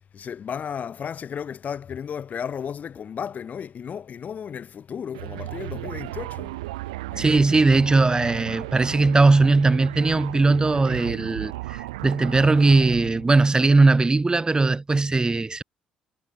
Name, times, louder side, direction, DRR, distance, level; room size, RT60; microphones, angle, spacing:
voice 1, 0.1-6.6 7.1-7.3, left 7 dB, 50° left, 2.4 m, -34 dB
sound 1, 5.1-13.4, right 19 dB, 85° right, 2.6 m, -35 dB
voice 2, 7.2-15.6, right 3 dB, 20° right, 0.8 m, -19 dB
hypercardioid pair, 55°, 3 cm